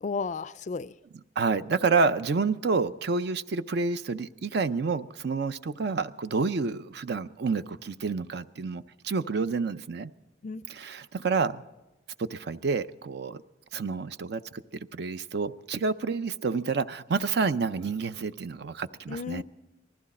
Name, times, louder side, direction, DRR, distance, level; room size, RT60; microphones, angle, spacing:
voice 1, 0.0-0.9 10.4-10.6 19.1-19.4, left 4 dB, 45° left, 17 dB, 0.4 m, -33 dB
voice 2, 1.1-10.1 10.7-11.6 12.2-13.4 13.7-14.6 14.9-19.4, right 4 dB, 65° right, 12 dB, 0.5 m, -29 dB
19.5 x 14.5 x 4.2 m, 1.0 s
head